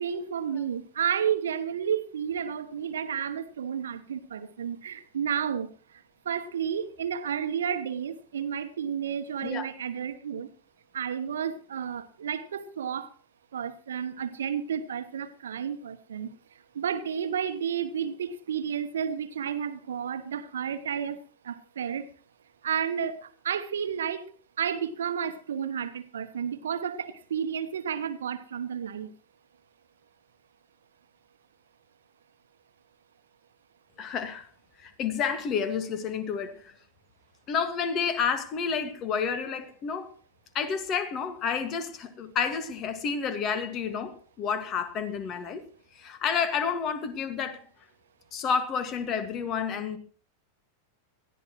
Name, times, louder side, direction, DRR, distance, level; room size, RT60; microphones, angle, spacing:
voice 1, 0.0-5.7 6.2-10.5 10.9-13.1 13.5-16.3 16.7-21.2 21.4-22.0 22.6-23.2 23.4-24.3 24.6-29.1, right 8 dB, 65° right, 11 dB, 1.1 m, -31 dB
voice 2, 34.0-34.5 34.8-36.7 37.5-40.1 40.5-45.6 45.9-47.6 48.3-50.0, left 6 dB, 35° left, 11 dB, 1.9 m, -30 dB
20.5 x 14.0 x 3.1 m, 0.40 s
figure-of-eight pair, 90°, 0 cm